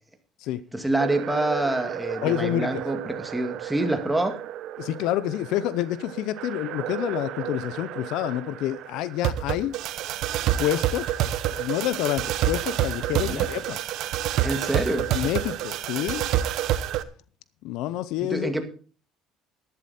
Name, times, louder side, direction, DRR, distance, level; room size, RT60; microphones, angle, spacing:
voice 1, 0.7-4.4 13.1-13.5 14.4-15.1 18.2-18.6, right 1 dB, 5° right, 2.1 m, -26 dB
sound 1, 1.0-17.0, right 12 dB, 65° right, 0.9 m, -29 dB
voice 2, 2.2-2.8 4.8-9.8 10.6-11.2 11.5-13.8 15.1-16.3 17.6-18.5, left 13 dB, 75° left, 0.6 m, -28 dB
11.5 x 11.5 x 4.2 m
cardioid pair, 110°, 0 cm